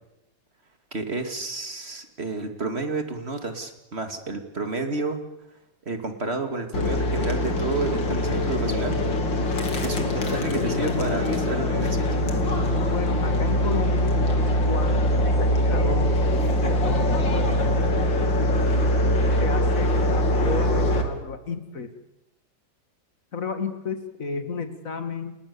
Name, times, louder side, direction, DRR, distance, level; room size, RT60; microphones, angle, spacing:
voice 1, 0.9-5.2 5.9-9.0 9.8-12.3, right 3 dB, 35° right, 6 dB, 2.7 m, -30 dB
sound 1, 6.7-21.0, left 1 dB, 85° left, 3.4 m, -23 dB
voice 2, 12.9-14.2 14.7-18.6 19.4-21.9 23.3-25.4, left 5 dB, 45° left, 9 dB, 2.5 m, -33 dB
29.5 x 19.5 x 7.0 m, 0.95 s
omnidirectional pair, 2.0 m